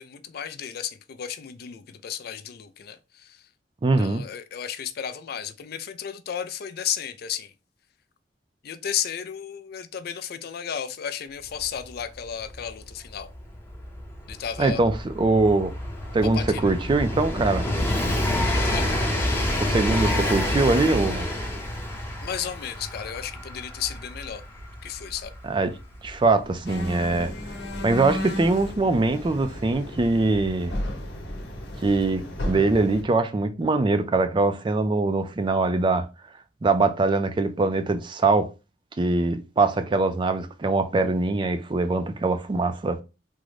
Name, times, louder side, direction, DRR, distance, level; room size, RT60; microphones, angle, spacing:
voice 1, 0.0-3.4 4.0-7.5 8.6-13.3 14.3-14.9 16.3-16.7 18.7-18.9 22.2-24.4 24.8-25.3, left 8 dB, 60° left, 0.4 m, -33 dB
voice 2, 3.8-4.2 14.6-15.7 16.1-17.7 19.6-21.3 25.4-25.7 26.0-27.3 27.8-30.7 31.8-36.1 36.6-38.5 39.0-43.0, right 3 dB, 25° right, 0.4 m, -22 dB
Train, 11.6-11.7 11.9-28.5 29.5-29.6, left 1 dB, 15° left, 0.7 m, -28 dB
sound 1, 26.6-33.0, equal, 75° left, 1.0 m, -33 dB
3.7 x 2.1 x 3.1 m
head